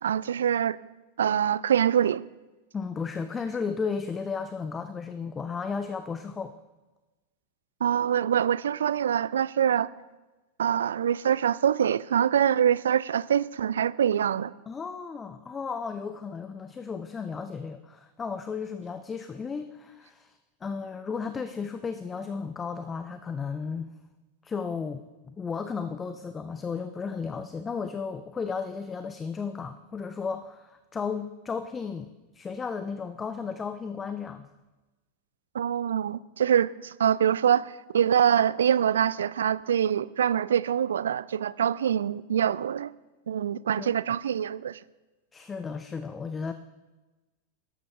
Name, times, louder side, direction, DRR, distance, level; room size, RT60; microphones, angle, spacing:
voice 1, 0.0-0.8 1.2-2.2 7.8-9.9 10.6-14.5 35.5-42.9 43.3-44.8, right 9 dB, 65° right, 0.3 m, -24 dB
voice 2, 2.7-6.5 14.7-23.9 24.4-32.1 32.3-34.5 43.8-43.9 45.3-46.5, left 5 dB, 20° left, 0.6 m, -34 dB
13.0 x 12.0 x 3.4 m
figure-of-eight pair, 90°, 0 cm